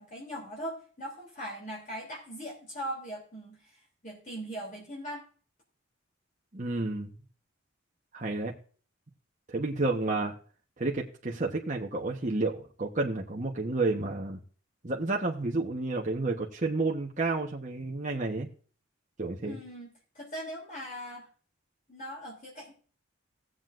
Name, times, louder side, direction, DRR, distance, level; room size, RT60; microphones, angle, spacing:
voice 1, 0.0-5.2 19.4-21.3 21.9-22.7, equal, 40° left, -3 dB, 3.1 m, -40 dB
voice 2, 6.5-7.1 8.1-8.5 9.5-10.3 10.8-14.4 14.8-18.5 19.2-19.6, right 2 dB, 35° right, 0 dB, 1.1 m, -30 dB
18.0 x 7.7 x 2.5 m, 0.41 s
head